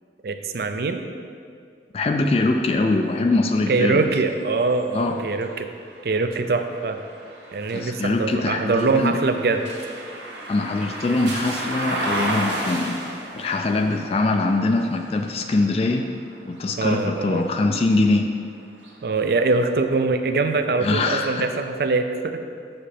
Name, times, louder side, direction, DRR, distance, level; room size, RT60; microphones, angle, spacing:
voice 1, 0.2-1.0 3.7-5.7 6.0-7.0 7.5-9.6 16.8-17.5 19.0-22.4, right 3 dB, 60° right, 7 dB, 0.4 m, -23 dB
voice 2, 1.9-4.0 4.9-5.2 7.7-9.1 10.5-16.1 16.5-18.3 20.8-21.5, left 2 dB, 35° left, 4 dB, 0.3 m, -22 dB
sound 1, 2.2-18.1 18.7-19.9, right 1 dB, 85° right, 1.0 m, -35 dB
7.2 x 5.1 x 4.2 m, 2.3 s
head